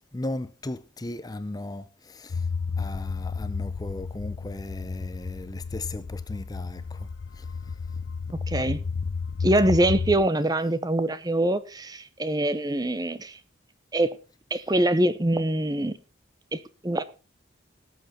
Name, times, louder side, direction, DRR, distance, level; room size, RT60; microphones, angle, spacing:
voice 1, 0.0-2.4 2.8-7.0 7.4-7.5, left 2 dB, 20° left, 0.5 m, -36 dB
sound 1, 2.3-10.3, left 5 dB, 70° left, 0.5 m, -32 dB
voice 2, 8.5-8.8 9.4-13.4 13.9-14.1 14.5-16.0 16.5-17.0, right 1 dB, 20° right, 0.7 m, -24 dB
18.0 x 7.8 x 4.2 m
head